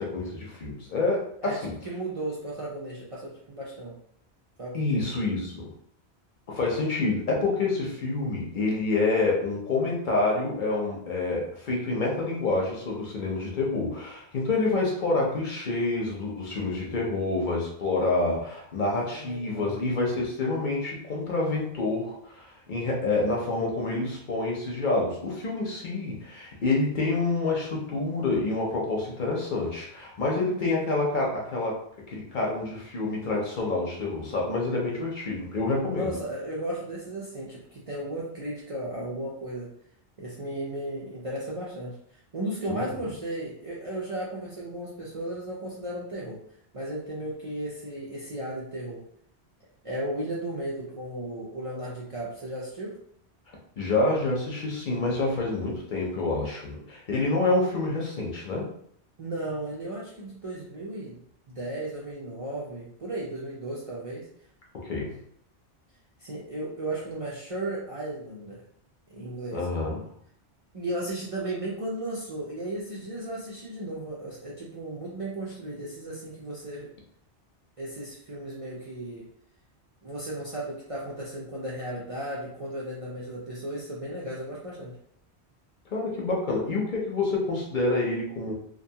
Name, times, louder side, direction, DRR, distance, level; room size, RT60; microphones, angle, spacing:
voice 1, 0.0-1.7 4.7-5.7 6.5-31.8 32.1-36.2 42.7-42.9 53.8-58.7 64.7-65.2 69.5-70.0 85.9-88.5, left 3 dB, 55° left, -2 dB, 0.7 m, -27 dB
voice 2, 1.4-3.9 4.6-5.0 19.0-19.8 35.9-39.7 40.2-46.4 46.7-49.0 49.8-53.0 59.2-61.2 61.5-64.3 66.2-68.6 69.1-69.7 70.7-76.9 77.8-79.3 80.0-85.0, right 1 dB, 45° right, -6 dB, 0.4 m, -35 dB
2.6 x 2.2 x 2.7 m, 0.66 s
omnidirectional pair, 1.1 m